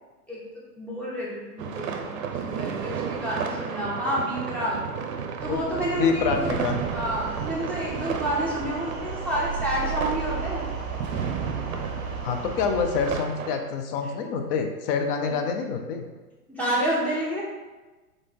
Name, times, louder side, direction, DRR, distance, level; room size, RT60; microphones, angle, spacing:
voice 1, 0.8-4.8 5.4-6.6 6.9-10.6 15.2-15.3 16.5-17.4, equal, 5° left, -7 dB, 1.2 m, -29 dB
sound 1, 1.6-13.6, right 6 dB, 60° right, 0.7 m, -33 dB
sound 2, 5.4-13.2, right 5 dB, 30° right, 1.4 m, -35 dB
voice 2, 5.5-6.8 12.2-16.1, left 5 dB, 35° left, 5 dB, 0.6 m, -27 dB
3.7 x 3.4 x 3.6 m, 1.2 s
hypercardioid pair, 115°, 46 cm